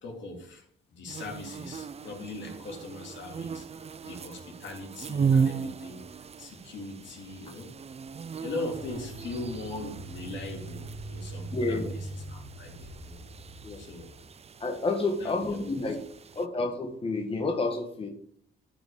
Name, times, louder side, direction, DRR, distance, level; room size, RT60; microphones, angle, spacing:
voice 1, 0.0-7.7 8.4-13.2 13.8-14.1 15.2-15.7, left 2 dB, 65° left, 0 dB, 3.1 m, -40 dB
sound 1, 1.1-16.5, right 6 dB, 30° right, 0.6 m, -36 dB
sound 2, 8.7-14.2, right 2 dB, 80° right, 2.3 m, -41 dB
voice 2, 11.5-11.9 13.6-13.8 14.6-16.0 16.3-18.1, left 3 dB, 30° left, 2 dB, 1.5 m, -29 dB
12.0 x 5.1 x 5.1 m, 0.65 s
cardioid pair, 90°, 20 cm